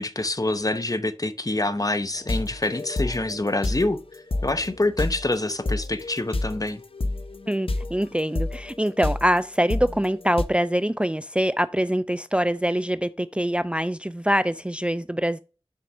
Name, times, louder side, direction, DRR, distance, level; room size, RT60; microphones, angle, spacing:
voice 1, 0.0-6.8, left 2 dB, 40° left, 0.8 m, -26 dB
sound 1, 2.1-10.4, left 2 dB, 90° left, 0.7 m, -30 dB
voice 2, 7.5-15.4, equal, 10° right, 0.4 m, -24 dB
7.6 x 4.0 x 6.0 m
wide cardioid pair, 40°, 9 cm